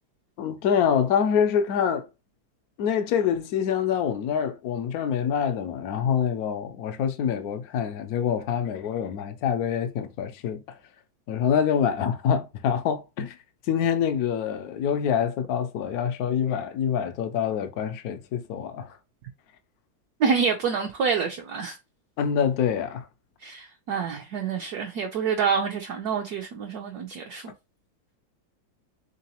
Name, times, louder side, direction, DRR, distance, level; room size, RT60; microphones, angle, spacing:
voice 1, 0.4-2.1 2.8-10.6 11.3-13.4 13.7-18.9 22.2-23.1, left 8 dB, 75° left, 0.8 m, -25 dB
voice 2, 20.2-21.8 23.4-27.5, right 6 dB, 70° right, 1.0 m, -27 dB
3.9 x 3.7 x 2.9 m
omnidirectional pair, 2.1 m